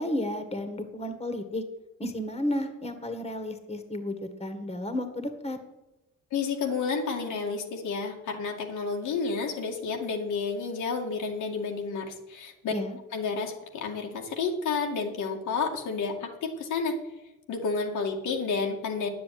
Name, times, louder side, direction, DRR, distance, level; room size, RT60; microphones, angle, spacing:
voice 1, 0.0-1.6 2.0-5.6 12.7-13.0, left 1 dB, 20° left, 8 dB, 1.8 m, -32 dB
voice 2, 6.3-12.7 13.1-17.0 17.5-19.1, left 4 dB, 85° left, 1 dB, 2.3 m, -30 dB
9.6 x 7.9 x 9.4 m, 0.98 s
cardioid pair, 90°, 30 cm